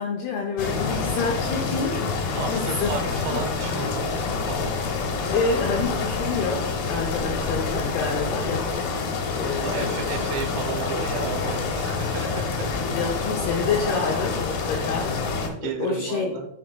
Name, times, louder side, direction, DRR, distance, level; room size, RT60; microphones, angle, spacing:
voice 1, 0.0-2.9 3.3-3.4 5.3-8.9 9.3-10.3 12.8-16.4, left 4 dB, 85° left, 0 dB, 2.2 m, -28 dB
sound 1, 0.6-15.5, left 4 dB, 70° left, 2.6 m, -27 dB
voice 2, 2.3-4.7 9.6-12.7 15.6-16.5, right 5 dB, 75° right, 3 dB, 3.2 m, -33 dB
11.0 x 4.7 x 2.2 m, 0.81 s
omnidirectional pair, 5.6 m